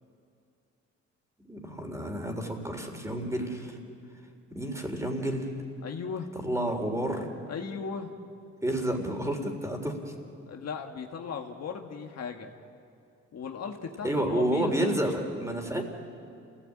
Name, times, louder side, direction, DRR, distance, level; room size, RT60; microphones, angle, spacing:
voice 1, 1.5-3.8 4.5-5.5 6.4-7.3 8.6-10.1 14.0-15.8, right 1 dB, 10° right, 3 dB, 3.9 m, -30 dB
voice 2, 5.8-6.3 7.5-8.1 10.5-12.5 13.3-15.1, left 6 dB, 55° left, 3 dB, 1.7 m, -37 dB
28.0 x 17.0 x 8.7 m, 2.5 s
cardioid pair, 90°, 30 cm